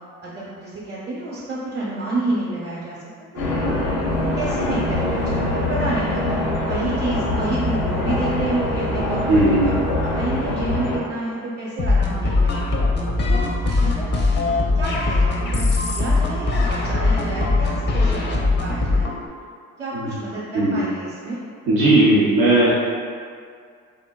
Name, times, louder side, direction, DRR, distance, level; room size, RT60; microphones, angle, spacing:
voice 1, 0.2-3.0 3.3-3.5 4.3-9.8 10.0-12.7 13.2-13.4 13.8-14.1 14.7-19.1 19.8-21.4, right 2 dB, 25° right, -7 dB, 0.8 m, -29 dB
sound 1, 3.4-11.0, left 1 dB, 85° left, 0.5 m, -23 dB
voice 2, 9.3-9.8 19.9-20.1 20.5-20.8 21.7-22.7, right 2 dB, 70° right, -8 dB, 0.7 m, -17 dB
sound 2, 11.8-19.2, left 3 dB, 30° left, 0.4 m, -20 dB
3.5 x 2.0 x 2.2 m, 2.1 s
hypercardioid pair, 60°, 39 cm